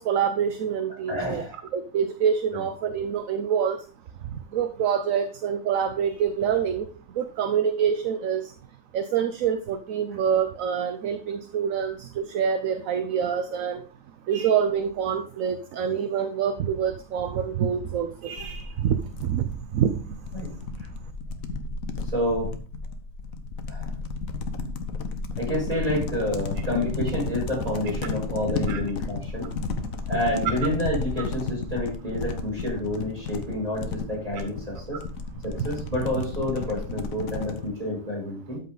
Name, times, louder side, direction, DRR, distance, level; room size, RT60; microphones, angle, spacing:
voice 1, 0.0-1.4 1.7-3.8 4.5-6.9 7.2-8.4 8.9-13.8 14.3-19.0 19.2-19.4 19.7-19.9 28.7-28.8, right 8 dB, 70° right, 9 dB, 1.1 m, -26 dB
voice 2, 1.1-1.6 2.5-2.6 20.3-20.5 22.1-22.5 23.7-23.9 25.4-29.5 30.1-35.0 35.4-38.6, left 1 dB, 25° right, -5 dB, 6.4 m, -29 dB
sound 1, 18.4-37.7, left 4 dB, 70° left, 1.4 m, -33 dB
13.0 x 5.8 x 3.9 m, 0.39 s
omnidirectional pair, 1.5 m